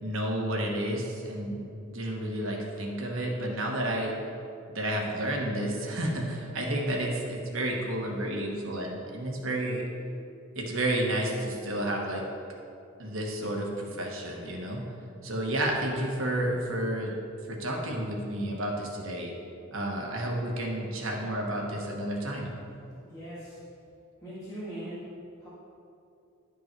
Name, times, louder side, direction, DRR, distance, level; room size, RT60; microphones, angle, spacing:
voice 1, 0.0-4.2 4.7-9.8 10.5-12.2 13.0-14.8 15.2-17.1 17.4-19.3 19.7-22.5, right 1 dB, 70° right, 0 dB, 1.2 m, -31 dB
voice 2, 23.0-23.6 24.2-25.5, equal, 15° left, -10 dB, 1.5 m, -41 dB
11.0 x 5.3 x 4.5 m, 2.5 s
head